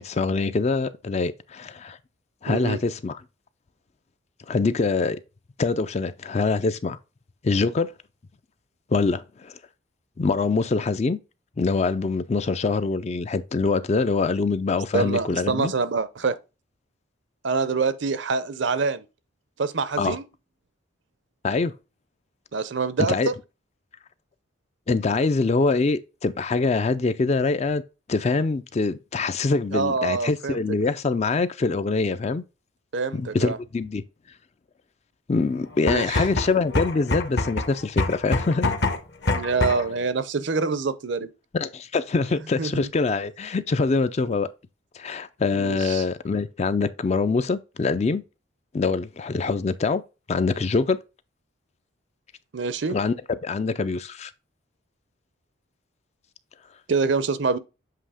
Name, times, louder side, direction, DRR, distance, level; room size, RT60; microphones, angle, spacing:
voice 1, 0.0-2.0 2.4-3.2 4.5-5.2 5.6-7.0 7.4-7.9 8.9-9.6 10.2-11.2 11.6-15.7 20.0-20.2 21.4-21.7 23.1-23.3 24.9-27.8 28.1-32.4 33.1-34.0 35.3-38.7 41.5-44.5 45.0-48.2 48.7-50.0 50.3-51.0 52.9-53.1 53.4-54.3, left 4 dB, 35° left, 0.4 m, -24 dB
voice 2, 2.5-2.8 14.9-16.4 17.4-19.0 19.6-20.2 22.5-23.3 29.7-30.6 32.9-33.6 35.8-36.2 39.3-41.3 42.6-42.9 45.5-46.0 52.5-53.0 56.9-57.6, right 4 dB, 60° right, 0.6 m, -25 dB
sound 1, 35.7-40.0, left 2 dB, 55° left, 0.9 m, -26 dB
7.6 x 2.8 x 4.9 m
head